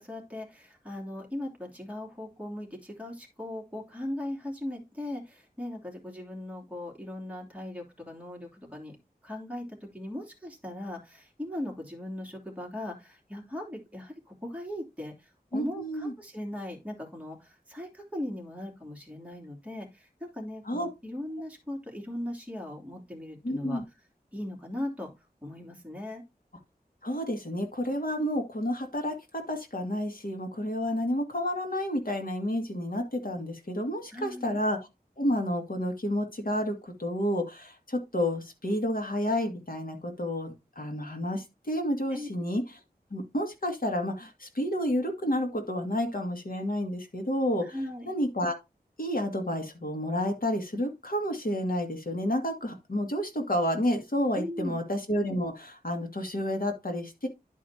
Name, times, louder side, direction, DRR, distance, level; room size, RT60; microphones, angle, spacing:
voice 1, 0.0-9.0 9.2-23.8 24.3-25.1 25.4-26.2 34.1-34.6 42.1-42.3 47.6-48.1 54.3-54.8, left 1 dB, 10° right, 0 dB, 3.0 m, -38 dB
voice 2, 15.5-16.1 20.7-20.9 23.4-23.8 27.0-34.8 35.2-42.6 43.1-47.7 48.1-48.5 49.0-57.3, equal, 60° left, 3 dB, 2.0 m, -30 dB
11.0 x 4.9 x 2.8 m, 0.23 s
wide cardioid pair, 60°, 16 cm